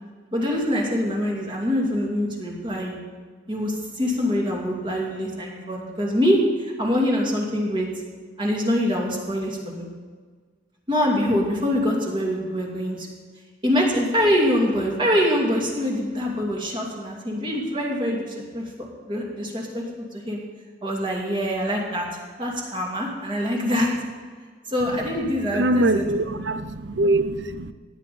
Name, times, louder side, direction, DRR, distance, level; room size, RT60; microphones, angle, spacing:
voice 1, 0.3-3.0 3.5-7.9 8.4-9.9 10.9-13.1 13.6-20.4 20.8-22.1 22.4-23.9 24.7-26.1 26.3-26.5, equal, 25° right, -2 dB, 2.4 m, -24 dB
voice 2, 25.5-27.7, right 2 dB, 75° right, 11 dB, 0.7 m, -23 dB
16.0 x 10.0 x 4.3 m, 1.5 s
head